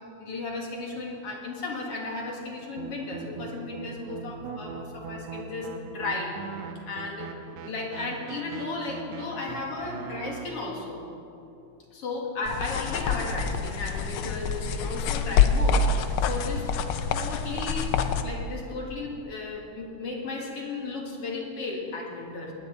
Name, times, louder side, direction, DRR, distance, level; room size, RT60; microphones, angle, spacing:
voice 1, 0.2-6.3 6.9-7.3 7.6-11.0 11.9-16.6 17.1-22.5, left 3 dB, 55° left, -1 dB, 3.1 m, -34 dB
sound 1, 2.8-10.4, right 6 dB, 70° right, 2.0 m, -40 dB
sound 2, 12.5-18.2, left 5 dB, 80° left, 1.2 m, -26 dB
20.5 x 17.0 x 4.1 m, 2.7 s
omnidirectional pair, 3.4 m